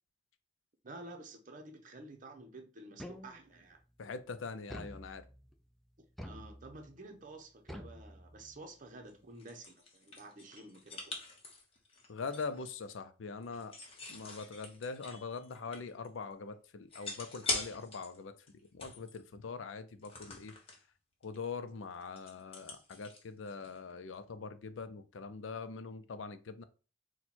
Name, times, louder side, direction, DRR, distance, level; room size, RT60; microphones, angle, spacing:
voice 1, 0.8-3.8 6.2-11.2, right 2 dB, 40° right, 0.7 m, -51 dB
sound 1, 3.0-3.7 4.7-5.5 6.2-7.0 7.7-8.7, equal, ahead, 0.3 m, -48 dB
voice 2, 4.0-5.2 12.1-13.7 14.1-18.3 18.7-20.5 21.2-26.6, left 4 dB, 75° left, 0.5 m, -43 dB
sound 2, 9.1-12.6 13.4-16.1 16.3-16.4 16.9-18.2 18.5-19.2 20.0-20.8 21.2-21.5 21.7-23.9, left 3 dB, 30° left, 0.9 m, -43 dB
4.4 x 2.2 x 4.2 m
head